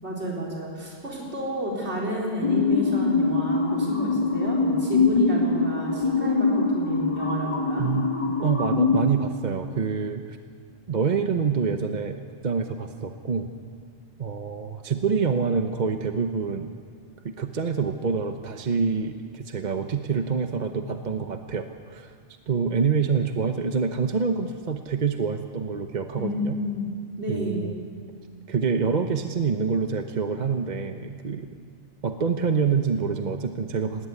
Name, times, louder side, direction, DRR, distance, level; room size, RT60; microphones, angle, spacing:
voice 1, 0.0-7.9 26.1-26.9 27.2-27.7, equal, 55° right, -3 dB, 4.3 m, -30 dB
sound 1, 2.4-9.0, left 4 dB, 25° left, 1.9 m, -23 dB
voice 2, 7.8-8.1 8.4-10.4 10.9-13.5 14.2-16.7 17.2-22.1 22.5-26.6 27.3-27.8 28.5-31.5 32.0-34.1, right 5 dB, 40° right, 6 dB, 0.9 m, -26 dB
19.0 x 17.0 x 9.9 m, 2.1 s
omnidirectional pair, 1.3 m